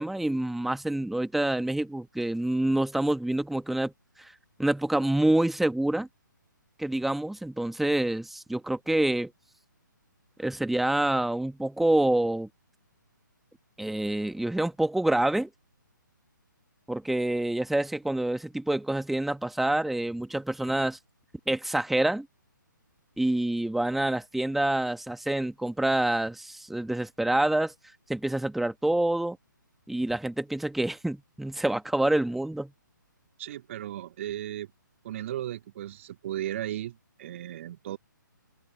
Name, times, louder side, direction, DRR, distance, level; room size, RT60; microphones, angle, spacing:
voice 1, 0.0-3.9 4.2-4.3 4.6-6.1 6.8-9.3 10.4-12.5 13.8-15.5 16.9-21.0 21.5-22.3 23.2-27.7 28.1-29.4 29.9-32.7, right 1 dB, ahead, 1.5 m, -27 dB
voice 2, 33.4-34.7 35.0-38.0, right 12 dB, 40° right, 2.0 m, -35 dB
figure-of-eight pair, 135°, 11 cm